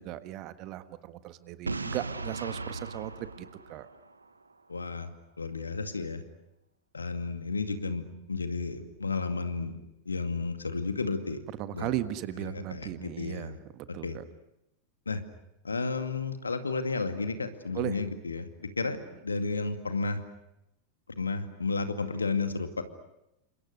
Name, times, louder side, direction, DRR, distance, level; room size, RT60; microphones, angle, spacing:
voice 1, 0.0-3.9 11.6-14.2 17.7-18.0, right 14 dB, 40° right, 12 dB, 1.6 m, -37 dB
Boom, 1.7-4.5, right 3 dB, 80° right, 1.4 m, -37 dB
voice 2, 4.7-5.1 5.4-6.2 6.9-9.8 10.1-11.4 11.7-11.9 12.4-13.6 14.0-14.2 15.1-15.2 15.6-19.0 19.2-20.2 21.1-22.8, left 4 dB, 75° left, 8 dB, 2.3 m, -32 dB
30.0 x 26.5 x 6.6 m, 0.88 s
figure-of-eight pair, 90°, 0 cm